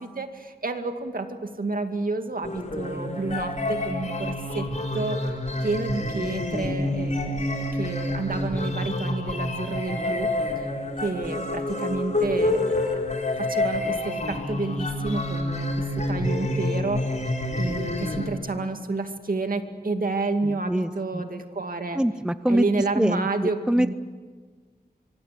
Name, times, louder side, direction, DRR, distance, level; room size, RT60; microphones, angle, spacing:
voice 1, 0.0-5.3 5.6-10.3 11.0-12.8 13.4-17.0 17.6-22.0 22.5-23.9, right 3 dB, 60° right, 6 dB, 2.3 m, -30 dB
sound 1, 2.4-18.3, left 1 dB, 50° left, 4.1 m, -28 dB
voice 2, 20.4-21.2 21.9-22.7 23.0-23.9, right 1 dB, 5° right, 12 dB, 0.7 m, -25 dB
25.5 x 24.5 x 7.6 m, 1.5 s
wide cardioid pair, 70°, 16 cm